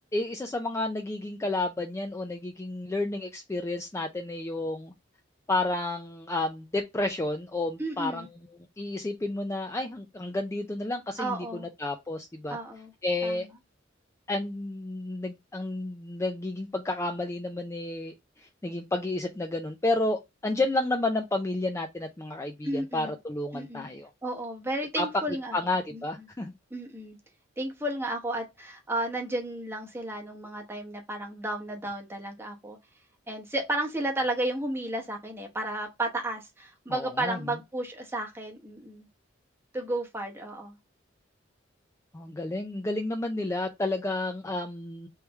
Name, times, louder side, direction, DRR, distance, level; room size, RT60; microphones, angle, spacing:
voice 1, 0.1-4.9 5.5-8.3 8.8-12.6 13.0-13.5 14.3-24.1 25.0-25.1 25.5-26.5 36.9-37.4 42.1-45.1, left 2 dB, 15° left, 0.3 m, -31 dB
voice 2, 7.8-8.3 11.2-11.7 12.5-12.9 13.2-13.5 22.6-23.2 23.5-23.8 24.2-25.6 25.9-26.0 26.7-27.2 27.6-32.8 33.3-39.1 39.7-40.7, right 1 dB, 10° right, 0.9 m, -33 dB
3.2 x 3.1 x 3.4 m
head